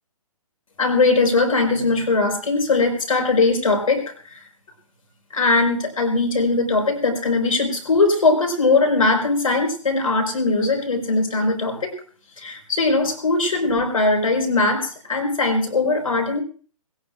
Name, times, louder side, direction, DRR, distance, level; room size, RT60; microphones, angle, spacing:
voice 1, 0.8-4.4 5.3-11.9 12.4-16.4, left 3 dB, 70° left, 3 dB, 5.1 m, -20 dB
20.5 x 18.0 x 2.6 m, 0.41 s
figure-of-eight pair, 135°, 19 cm